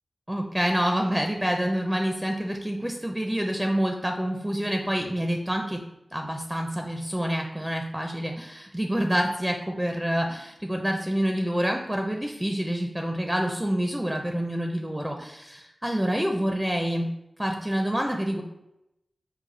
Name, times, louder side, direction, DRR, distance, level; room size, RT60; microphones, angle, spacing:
voice 1, 0.3-5.8 6.1-17.1 17.4-18.4, equal, 10° right, 3 dB, 0.4 m, -27 dB
4.7 x 2.3 x 3.8 m, 0.88 s
wide cardioid pair, 60°, 0 cm